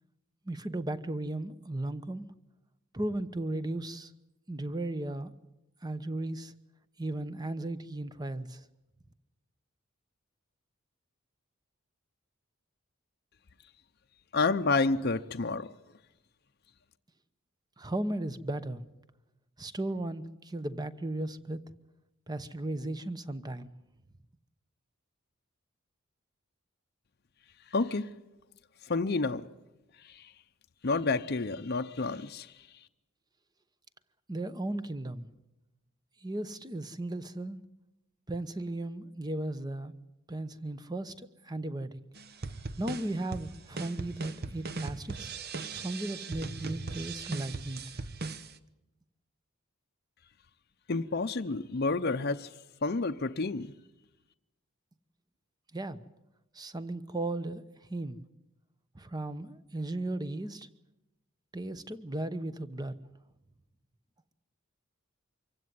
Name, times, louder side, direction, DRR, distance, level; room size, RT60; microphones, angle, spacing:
voice 1, 0.4-2.3 2.9-4.1 4.5-5.3 5.8-6.5 7.0-8.6 17.8-18.8 19.6-21.6 22.3-23.7 34.3-35.3 36.2-37.6 38.3-39.9 40.3-42.0 42.5-45.3 45.7-48.0 55.7-56.0 56.5-57.6 57.9-58.2 58.9-60.7 61.5-62.9, right 1 dB, 20° right, 0.9 m, -36 dB
voice 2, 14.3-15.7 27.7-28.1 28.8-29.5 30.0-30.3 30.8-32.5 50.9-52.5 52.8-53.7, left 3 dB, 50° left, 0.7 m, -29 dB
sound 1, 42.1-48.5, right 4 dB, 45° right, 0.9 m, -39 dB
25.0 x 16.0 x 9.6 m
head